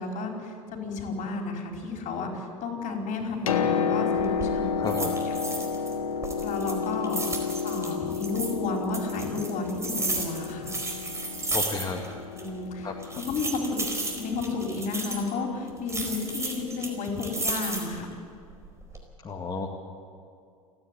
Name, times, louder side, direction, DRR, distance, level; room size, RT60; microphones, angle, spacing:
voice 1, 0.0-5.0 6.4-10.8 12.3-12.9 13.3-13.8 14.1-18.1, left 3 dB, 45° left, 2 dB, 4.8 m, -32 dB
Piano, 3.2-16.9 18.0-18.1, left 6 dB, 75° left, 1.4 m, -32 dB
sound 1, 4.2-4.5 4.9-5.9 6.2-8.5 8.9-12.1 12.4-12.5 13.0-15.3 15.9-18.0 18.5-19.0, right 2 dB, 15° right, 4.4 m, -33 dB
voice 2, 4.8-5.2 11.5-12.0 12.8-12.9 19.2-19.7, left 4 dB, 25° left, 0 dB, 2.0 m, -32 dB
29.0 x 10.0 x 9.2 m, 2.4 s
hypercardioid pair, 80°, 18 cm